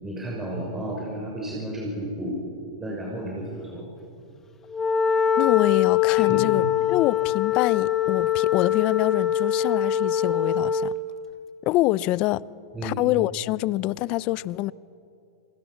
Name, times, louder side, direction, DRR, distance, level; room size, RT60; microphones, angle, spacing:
voice 1, 0.0-2.4 2.8-3.9 6.2-6.5 12.7-13.0, right 1 dB, 10° right, 6.3 m, -32 dB
Wind instrument woodwind instrument, 4.7-11.0, left 9 dB, 15° left, 1.3 m, -23 dB
voice 2, 5.4-10.9 11.6-12.4 12.8-14.7, left 17 dB, 40° left, 0.6 m, -25 dB
28.5 x 23.5 x 7.3 m
hypercardioid pair, 135°, 3 cm